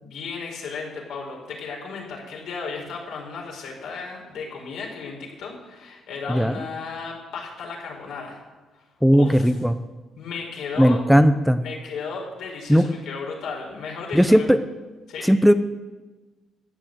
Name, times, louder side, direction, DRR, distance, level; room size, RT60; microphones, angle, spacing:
voice 1, 0.0-8.4 8.7-8.8 9.1-9.5 10.2-11.0 11.6-14.5 15.1-15.3, left 5 dB, 80° left, -1 dB, 4.7 m, -34 dB
voice 2, 6.3-6.6 9.0-9.8 10.8-11.6 12.7-12.9 14.1-14.6 15.2-15.5, equal, ahead, 10 dB, 0.7 m, -17 dB
14.5 x 9.0 x 7.8 m, 1.2 s
cardioid pair, 90°, 0 cm